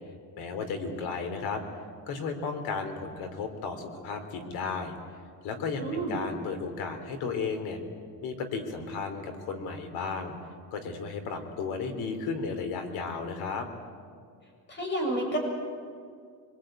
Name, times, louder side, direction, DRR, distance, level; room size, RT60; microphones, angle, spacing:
voice 1, 0.4-1.6 2.1-4.9 5.4-7.8 8.2-10.3 10.7-13.7, left 4 dB, 85° left, 7 dB, 3.6 m, -34 dB
voice 2, 5.8-6.2 14.7-15.4, right 1 dB, 30° left, 1 dB, 7.5 m, -30 dB
24.5 x 22.0 x 9.1 m, 2.2 s
cardioid pair, 155°, 37 cm